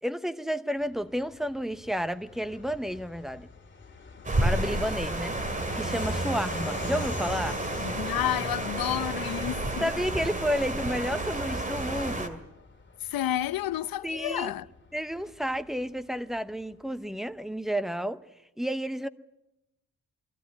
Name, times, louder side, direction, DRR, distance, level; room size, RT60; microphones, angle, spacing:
voice 1, 0.0-3.5 4.4-7.6 9.8-12.4 14.0-14.5 14.9-18.2 18.6-19.1, equal, ahead, 0.7 m, -31 dB
Fixed-wing aircraft airplane, 0.8-17.0, left 4 dB, 30° left, 2.3 m, -46 dB
sound 1, 4.2-12.3, right 2 dB, 20° right, 2.3 m, -31 dB
voice 2, 7.8-9.9 13.0-14.7, left 12 dB, 80° left, 0.7 m, -30 dB
23.5 x 15.5 x 9.7 m
wide cardioid pair, 130°, 35 cm